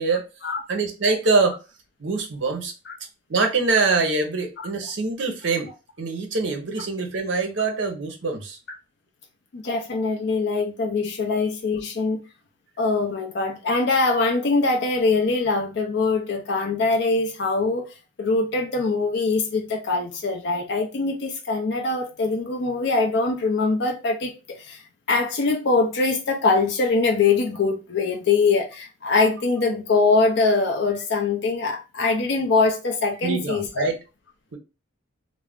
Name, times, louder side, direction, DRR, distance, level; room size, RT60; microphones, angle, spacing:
voice 1, 0.7-1.6 2.0-2.7 3.3-5.7 6.0-8.6 11.3-11.4 33.2-34.0, right 4 dB, 60° right, 0.6 m, -24 dB
voice 2, 9.5-12.2 12.8-17.9 18.2-24.8 25.1-33.9, left 3 dB, 55° left, 0.4 m, -23 dB
2.4 x 2.0 x 3.4 m
head